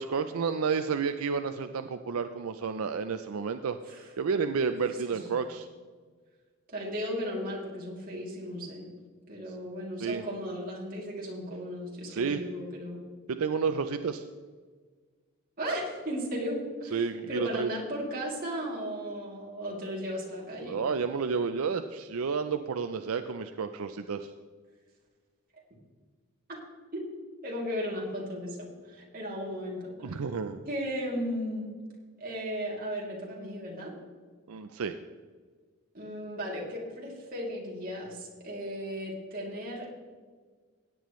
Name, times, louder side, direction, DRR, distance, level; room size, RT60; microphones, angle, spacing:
voice 1, 0.0-3.8 4.2-5.7 10.0-10.2 12.1-12.4 13.3-14.2 16.9-17.7 20.6-24.3 30.0-30.6 34.5-35.0, right 5 dB, 80° right, 9 dB, 0.5 m, -31 dB
voice 2, 6.7-8.9 9.3-13.0 15.6-20.8 26.9-27.0 27.4-30.2 30.7-31.7 32.2-33.9 35.9-39.9, equal, 40° right, -3 dB, 2.8 m, -36 dB
17.0 x 9.2 x 3.1 m, 1.5 s
head